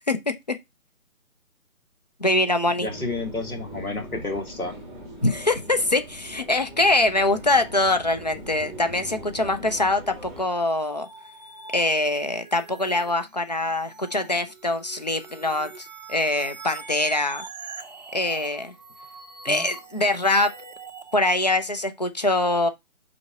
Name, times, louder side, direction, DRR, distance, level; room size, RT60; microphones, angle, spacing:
voice 1, 0.1-0.6 2.2-2.9 5.2-11.1 11.7-17.4 18.1-18.7 19.4-20.5 21.1-22.7, left 2 dB, 30° left, 0.5 m, -23 dB
voice 2, 2.8-4.8 19.5-19.7, left 2 dB, 80° left, 2.2 m, -31 dB
sound 1, 2.9-10.4, equal, ahead, 1.0 m, -40 dB
sound 2, 10.5-21.1, right 4 dB, 30° right, 0.5 m, -43 dB
5.2 x 4.1 x 4.5 m
figure-of-eight pair, 145°, 43 cm